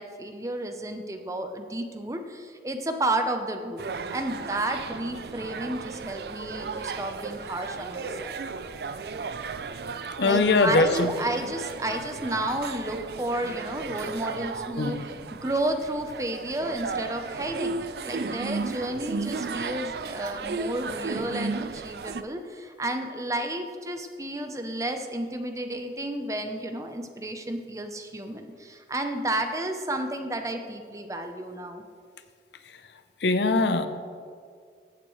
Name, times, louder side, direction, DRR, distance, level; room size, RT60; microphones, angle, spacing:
voice 1, 0.0-3.8 4.1-8.4 10.2-31.8, right 1 dB, 20° right, 6 dB, 0.6 m, -32 dB
sound 1, 3.8-22.2, right 4 dB, 65° right, 0.4 m, -35 dB
voice 2, 10.2-11.1 14.8-15.0 33.2-33.9, left 3 dB, 80° left, 10 dB, 0.6 m, -21 dB
14.5 x 8.4 x 3.2 m, 2.2 s
head